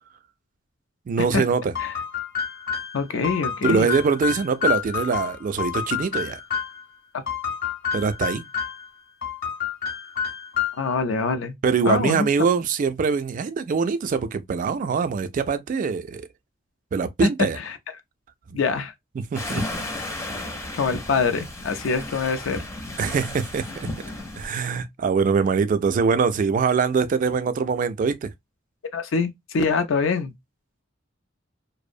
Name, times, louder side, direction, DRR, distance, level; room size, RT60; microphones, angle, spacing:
voice 1, 1.1-1.7 3.6-6.4 7.9-8.5 11.6-16.3 16.9-17.6 18.5-18.6 19.2-19.8 23.0-23.9 24.4-28.3, right 5 dB, 40° right, 0.3 m, -23 dB
sound 1, 1.7-6.8 7.3-8.9 9.2-10.9, left 8 dB, 50° left, 0.8 m, -29 dB
voice 2, 2.9-3.9 10.7-11.5 11.9-12.3 17.7-17.8 18.5-18.9 20.7-22.6 28.9-30.3, left 4 dB, 75° left, 0.5 m, -24 dB
sound 2, 19.3-24.5, left 2 dB, 15° left, 0.5 m, -33 dB
2.5 x 2.0 x 2.4 m
head